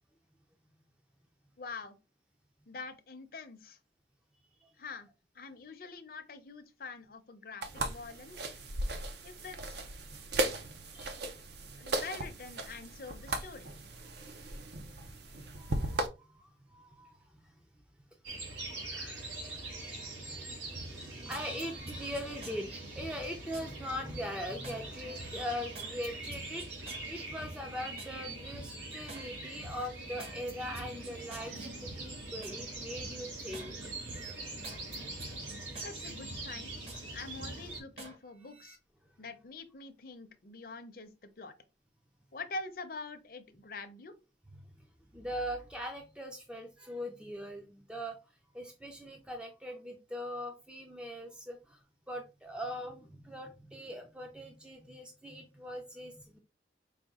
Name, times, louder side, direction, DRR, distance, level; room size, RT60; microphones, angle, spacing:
voice 1, 1.6-2.0 2.7-3.8 4.8-5.1 5.3-8.5 9.2-9.8 11.8-13.7 35.8-36.7 37.1-38.8 39.2-41.5 42.3-44.1, left 3 dB, 50° left, 0.6 m, -45 dB
sound 1, 7.6-16.1, right 2 dB, 65° right, 0.6 m, -37 dB
voice 2, 10.6-11.3 11.7-11.8 15.6-17.5 18.9-33.9 45.1-48.2 48.5-56.4, equal, 5° right, 0.4 m, -41 dB
sound 2, 18.2-37.8, right 2 dB, 85° right, 1.5 m, -43 dB
sound 3, 20.8-23.7 24.1-24.8 25.2-28.2 28.5-29.3 29.6-32.6 33.0-33.7 34.1-37.0 37.4-38.2 38.5-38.8, right 1 dB, 35° right, 0.8 m, -49 dB
4.9 x 2.3 x 3.5 m
head